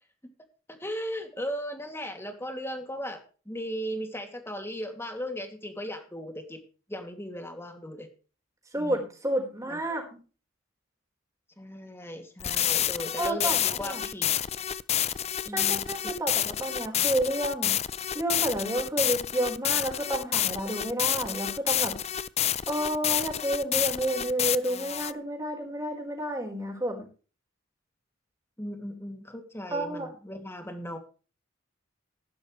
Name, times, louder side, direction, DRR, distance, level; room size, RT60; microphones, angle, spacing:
voice 1, 0.7-6.6 6.9-8.1 8.8-8.9 9.7-9.8 11.6-14.3 15.4-16.1 28.6-31.0, equal, 10° left, 5 dB, 2.6 m, -37 dB
voice 2, 8.7-10.0 13.2-14.0 15.5-17.8 18.1-22.0 22.7-27.1 29.7-30.1, right 1 dB, 15° right, 1 dB, 4.8 m, -30 dB
sound 1, 12.4-25.1, left 10 dB, 30° left, 0.5 m, -29 dB
16.0 x 11.5 x 3.3 m, 0.36 s
head